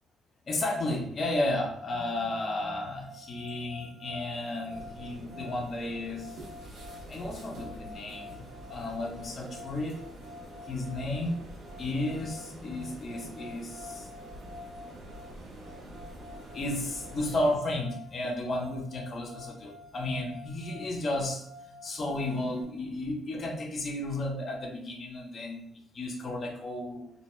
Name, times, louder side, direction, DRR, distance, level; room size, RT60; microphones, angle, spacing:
voice 1, 0.5-6.7 7.1-8.4 8.7-10.0 10.6-11.4 11.8-14.1 15.7-16.1 16.5-25.6 25.9-27.1, left 1 dB, 45° left, 1 dB, 0.7 m, -33 dB
sound 1, 2.8-22.6, left 2 dB, 30° right, 0.9 m, -49 dB
sound 2, 4.7-17.6, right 1 dB, 75° right, 1.1 m, -47 dB
2.7 x 2.1 x 3.0 m, 0.73 s
cardioid pair, 90°, 0 cm